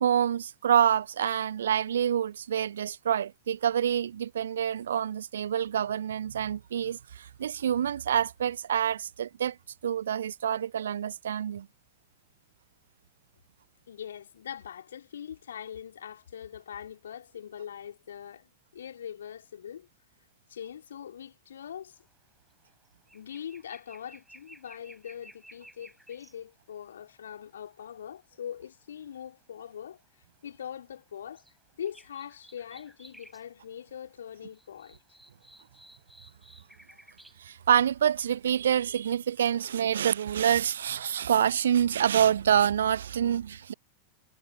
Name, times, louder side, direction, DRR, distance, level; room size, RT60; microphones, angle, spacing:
voice 1, 0.0-9.6 9.8-11.7 37.4-43.7, right 9 dB, 65° right, 0.6 m, -27 dB
voice 2, 13.9-19.9 20.5-22.0 23.1-30.0 30.4-31.4 31.8-35.0 36.9-37.0, left 9 dB, 65° left, 4.0 m, -42 dB
sound 1, 22.0-22.2 22.5-26.4 27.2-27.9 29.9-30.1 30.5-31.6 31.8-33.5 33.8-33.9 34.2-37.4 37.9-38.5 38.8-38.9, right 1 dB, 5° right, 7.8 m, -55 dB
figure-of-eight pair, 90°, 0 cm